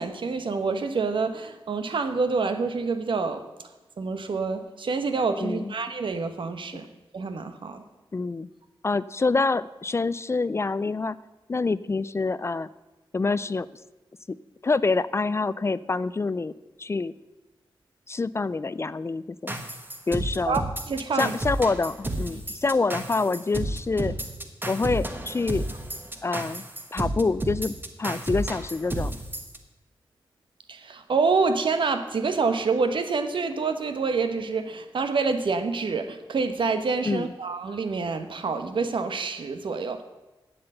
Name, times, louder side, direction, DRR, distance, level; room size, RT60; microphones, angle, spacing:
voice 1, 0.0-3.5 4.0-6.9 7.1-7.8 20.5-21.4 30.7-40.0, right 4 dB, 70° right, 9 dB, 0.9 m, -27 dB
voice 2, 5.4-5.7 6.7-6.8 8.1-8.5 8.8-11.2 11.5-12.7 13.1-13.7 14.6-16.5 16.8-17.1 18.1-19.6 20.1-20.6 21.1-24.1 24.7-25.7 26.2-26.6 26.9-29.1 37.1-37.3, left 3 dB, 30° left, 17 dB, 0.3 m, -26 dB
sound 1, 19.5-29.6, right 1 dB, 25° right, 1.1 m, -32 dB
7.9 x 7.8 x 7.7 m, 1.1 s
wide cardioid pair, 80°, 9 cm